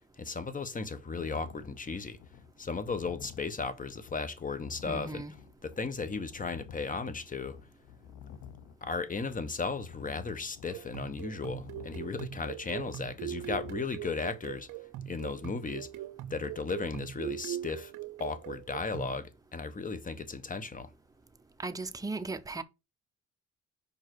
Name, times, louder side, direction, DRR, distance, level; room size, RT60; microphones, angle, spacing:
voice 1, 0.2-2.2 2.6-5.2 5.6-7.6 8.8-14.7 15.1-15.9 16.3-17.9 18.2-20.9, left 4 dB, 25° left, 0.9 m, -35 dB
sound 1, 1.1-13.8, left 8 dB, 90° left, 0.8 m, -51 dB
voice 2, 4.8-5.3 21.6-22.6, right 3 dB, 10° right, 0.6 m, -37 dB
sound 2, 10.7-19.2, right 12 dB, 85° right, 0.5 m, -41 dB
5.0 x 4.6 x 4.6 m
cardioid pair, 90°, 30 cm